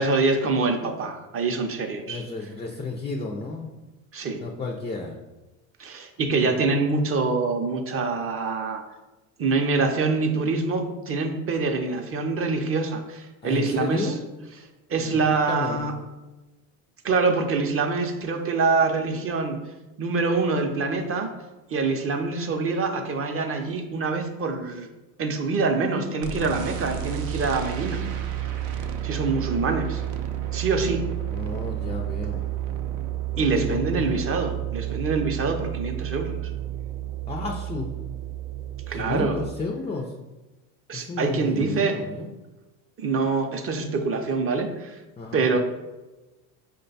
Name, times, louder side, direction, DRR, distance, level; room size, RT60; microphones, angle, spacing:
voice 1, 0.0-2.2 4.1-4.4 5.8-8.8 9.4-14.1 14.9-15.9 17.0-19.6 20.0-21.3 21.7-24.9 25.2-28.0 29.0-30.0 30.5-31.0 33.4-36.4 38.9-39.4 40.9-42.0 43.0-45.0 45.3-45.6, right 4 dB, 30° right, 5 dB, 0.6 m, -25 dB
voice 2, 2.1-3.7 4.4-5.2 6.2-6.7 13.4-14.2 15.0-15.8 31.3-32.5 33.3-34.1 37.3-37.9 38.9-40.1 40.9-42.3 45.2-45.4, left 3 dB, 15° left, 2 dB, 0.3 m, -32 dB
sound 1, 26.2-39.5, right 12 dB, 80° right, 0.6 m, -31 dB
5.0 x 2.2 x 3.9 m, 1.1 s
supercardioid pair, 90°, 43 cm